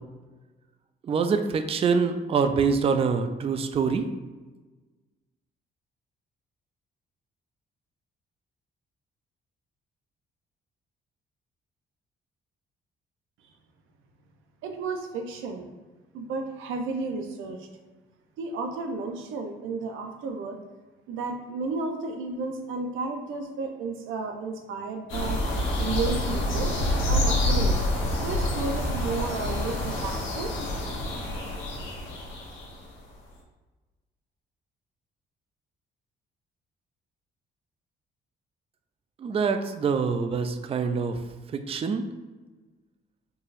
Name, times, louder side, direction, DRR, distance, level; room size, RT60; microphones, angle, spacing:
voice 1, 1.0-4.1 39.2-41.2 41.5-42.0, right 5 dB, 30° right, 7 dB, 0.3 m, -25 dB
voice 2, 14.6-15.7 16.1-17.7 18.4-20.6 21.1-25.4 25.8-26.7 27.1-27.9 28.2-30.5, right 3 dB, 90° right, 5 dB, 0.6 m, -32 dB
sound 1, 25.1-32.8, left 1 dB, 80° left, 0.9 m, -27 dB
4.5 x 3.2 x 2.5 m, 1.3 s
cardioid pair, 90°, 20 cm